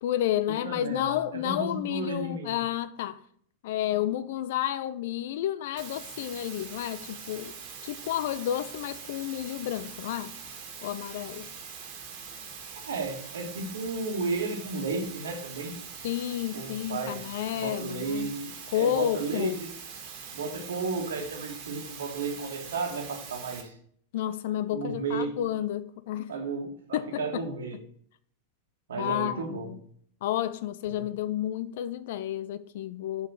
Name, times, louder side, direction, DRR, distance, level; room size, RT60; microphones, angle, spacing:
voice 1, 0.0-3.2 3.6-7.6 7.8-10.3 10.8-11.5 16.0-18.3 18.7-19.6 24.1-26.3 26.9-27.5 29.0-29.8 30.2-33.3, left 12 dB, 55° left, 0.4 m, -31 dB
voice 2, 0.6-1.2 1.4-2.6 12.7-15.7 16.5-19.7 20.3-23.7 24.7-25.3 26.3-27.8 28.9-29.8 30.9-31.0, right 3 dB, 65° right, 1.5 m, -33 dB
sound 1, 5.8-23.6, right 6 dB, 45° right, 1.7 m, -43 dB
5.5 x 5.5 x 6.1 m
figure-of-eight pair, 90°, 0 cm